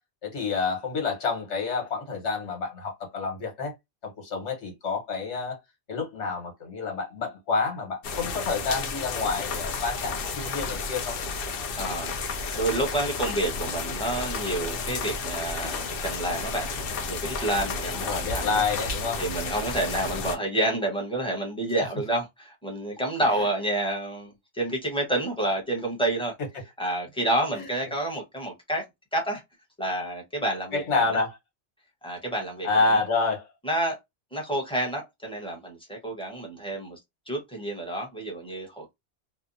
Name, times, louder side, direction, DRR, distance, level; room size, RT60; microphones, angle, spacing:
voice 1, 0.2-3.7 4.2-5.6 5.9-11.1 17.9-19.2 23.4-23.5 27.5-27.7 30.7-31.4 32.6-33.5, left 4 dB, 80° left, 1.4 m, -28 dB
sound 1, 8.0-20.4, left 4 dB, 65° left, 0.7 m, -32 dB
voice 2, 11.8-16.7 17.1-18.6 19.2-26.3 26.8-28.8 29.1-29.4 29.8-30.8 32.0-32.7 33.6-34.0 34.3-37.0 37.3-38.9, right 1 dB, 5° left, 0.8 m, -29 dB
2.7 x 2.1 x 2.5 m
omnidirectional pair, 1.2 m